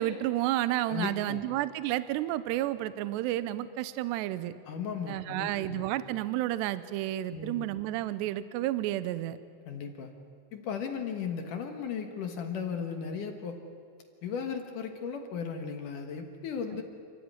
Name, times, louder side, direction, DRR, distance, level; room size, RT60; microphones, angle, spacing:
voice 1, 0.0-4.5 5.1-9.4, right 14 dB, 80° right, 14 dB, 2.6 m, -31 dB
voice 2, 0.9-1.4 4.7-5.8 7.3-7.7 9.7-10.1 10.5-13.6 14.2-16.8, left 6 dB, 65° left, 5 dB, 2.2 m, -36 dB
30.0 x 14.0 x 9.6 m, 2.5 s
omnidirectional pair, 5.5 m